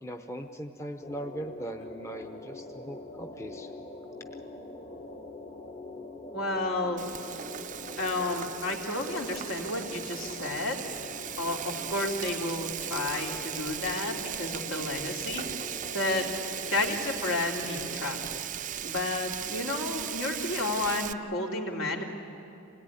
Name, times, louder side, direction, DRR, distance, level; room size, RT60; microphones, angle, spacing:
voice 1, 0.0-3.7, equal, 15° left, 4 dB, 0.8 m, -39 dB
sound 1, 1.0-18.4, left 2 dB, 35° left, 1.2 m, -44 dB
voice 2, 6.3-7.0 8.0-10.8 11.4-15.6 15.9-16.3 16.6-18.2 18.8-22.0, left 2 dB, 75° left, 0 dB, 3.0 m, -31 dB
Frying (food), 7.0-21.1, right 10 dB, 35° right, 0.5 m, -37 dB
26.5 x 18.0 x 9.9 m, 2.8 s
head